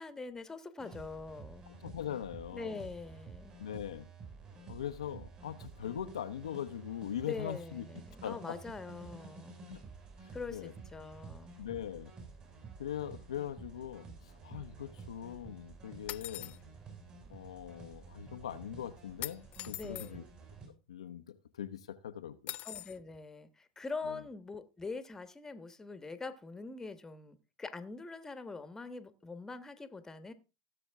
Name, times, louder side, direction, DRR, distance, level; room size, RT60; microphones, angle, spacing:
voice 1, 0.0-1.6 2.5-3.6 7.2-9.6 10.3-11.6 19.8-20.2 22.6-30.3, left 4 dB, 15° left, 1.3 m, -43 dB
sound 1, 0.8-20.7, right 4 dB, 35° right, 5.8 m, -51 dB
voice 2, 1.7-2.8 3.6-4.1 4.7-7.8 8.2-8.6 9.7-9.8 10.2-10.7 11.3-12.1 12.8-16.6 17.3-20.2 20.9-22.5 24.1-24.2, left 9 dB, 85° left, 0.8 m, -41 dB
sound 2, 16.1-16.6 19.2-20.1 22.5-23.0, left 15 dB, 45° left, 0.5 m, -42 dB
16.5 x 7.0 x 3.6 m
hypercardioid pair, 90°, 3 cm